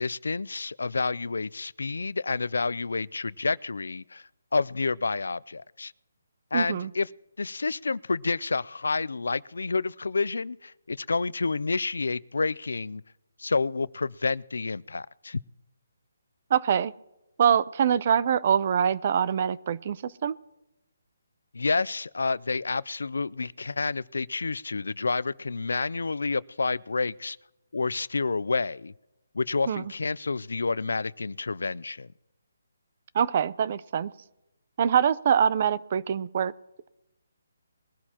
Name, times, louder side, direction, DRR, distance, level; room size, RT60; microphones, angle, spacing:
voice 1, 0.0-5.9 6.5-7.1 7.4-13.0 13.4-15.4 21.5-27.4 27.7-28.9 29.3-32.1, left 4 dB, 85° left, 22 dB, 0.4 m, -29 dB
voice 2, 6.5-6.9 16.5-16.9 17.4-20.3 29.7-29.8 33.1-34.1 34.8-36.5, right 8 dB, 40° right, 18 dB, 0.5 m, -24 dB
21.5 x 12.0 x 2.9 m, 0.94 s
hypercardioid pair, 160°, 0 cm